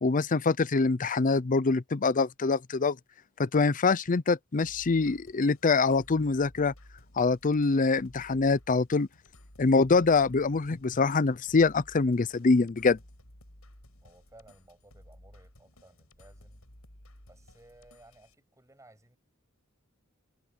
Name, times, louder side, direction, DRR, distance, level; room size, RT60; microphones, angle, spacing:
voice 1, 0.0-3.0 3.4-6.7 7.2-9.1 9.6-13.0, left 4 dB, 40° left, 0.5 m, -24 dB
sound 1, 4.6-18.3, left 1 dB, 85° left, 7.3 m, -55 dB
voice 2, 14.0-16.6 17.3-19.2, right 2 dB, 15° right, 7.8 m, -58 dB
head